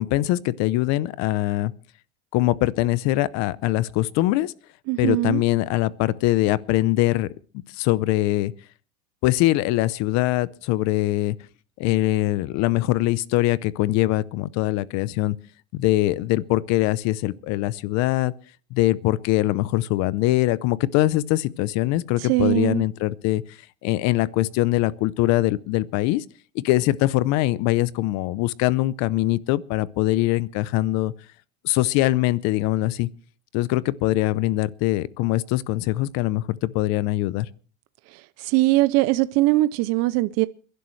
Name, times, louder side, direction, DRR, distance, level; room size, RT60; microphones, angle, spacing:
voice 1, 0.0-1.7 2.3-4.5 5.0-7.3 7.7-8.5 9.2-11.4 11.8-15.4 15.7-18.3 18.7-26.2 26.5-31.1 31.6-33.1 33.5-37.5, left 17 dB, 50° left, 0.7 m, -22 dB
voice 2, 4.9-5.4 22.2-22.8 38.4-40.5, right 18 dB, 50° right, 0.6 m, -21 dB
28.0 x 11.5 x 3.2 m
supercardioid pair, 140°, 34 cm